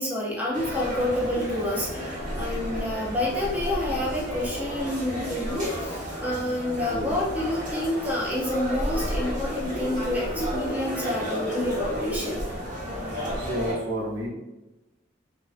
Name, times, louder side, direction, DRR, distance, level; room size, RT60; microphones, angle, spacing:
voice 1, 0.0-12.4, left 1 dB, 10° right, -5 dB, 0.5 m, -29 dB
sound 1, 0.5-13.7, equal, 45° right, 1.1 m, -31 dB
voice 2, 13.4-14.3, equal, 85° right, -5 dB, 0.8 m, -30 dB
2.6 x 2.2 x 2.4 m, 1.0 s
head